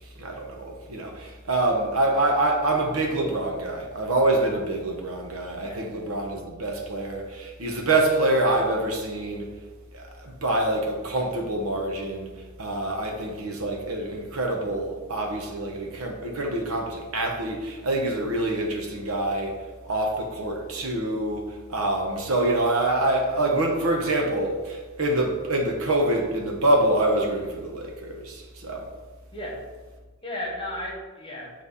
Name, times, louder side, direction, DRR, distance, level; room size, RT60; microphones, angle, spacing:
voice 1, 0.2-9.5 9.9-12.3 12.6-19.6 19.8-28.9, right 2 dB, 70° right, 1.0 m, -26 dB
voice 2, 29.3-29.6 30.2-31.6, left 1 dB, 25° left, 1.2 m, -34 dB
7.7 x 3.3 x 4.1 m
head